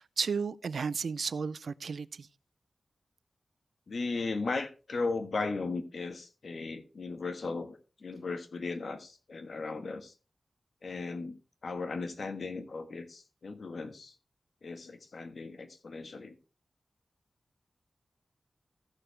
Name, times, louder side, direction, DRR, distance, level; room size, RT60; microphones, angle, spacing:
voice 1, 0.0-2.3, right 5 dB, 85° right, 0.4 m, -33 dB
voice 2, 3.9-10.1 10.8-11.4 11.6-14.1 14.6-16.3, left 3 dB, 70° left, 1.3 m, -36 dB
15.0 x 6.7 x 3.2 m
wide cardioid pair, 80°, 0 cm